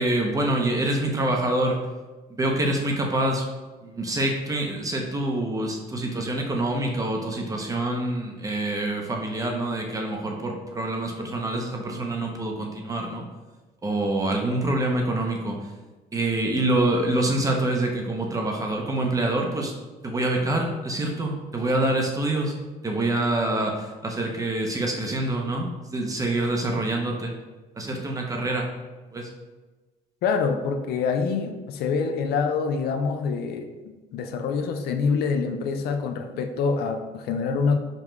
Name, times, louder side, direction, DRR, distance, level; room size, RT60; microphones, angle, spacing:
voice 1, 0.0-1.8 2.3-3.4 3.8-13.3 13.8-15.6 16.1-19.7 20.0-22.6 22.8-25.7 25.9-27.3 27.8-28.7 29.1-29.3, right 1 dB, 20° right, 1 dB, 0.7 m, -26 dB
voice 2, 30.2-37.8, left 5 dB, 70° left, 6 dB, 0.4 m, -26 dB
5.2 x 2.4 x 3.1 m, 1.2 s
cardioid pair, 110°, 17 cm